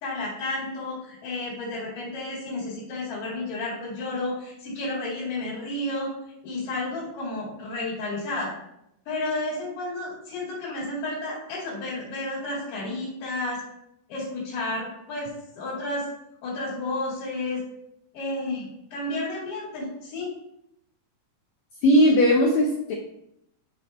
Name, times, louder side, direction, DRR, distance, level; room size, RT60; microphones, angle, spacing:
voice 1, 0.0-6.1 6.4-8.5 9.1-13.6 14.1-16.1 16.4-17.6 18.1-20.3, left 2 dB, 65° left, -7 dB, 3.7 m, -31 dB
voice 2, 21.8-22.9, equal, 90° left, 0 dB, 1.5 m, -18 dB
9.6 x 3.5 x 4.2 m, 0.81 s
omnidirectional pair, 4.1 m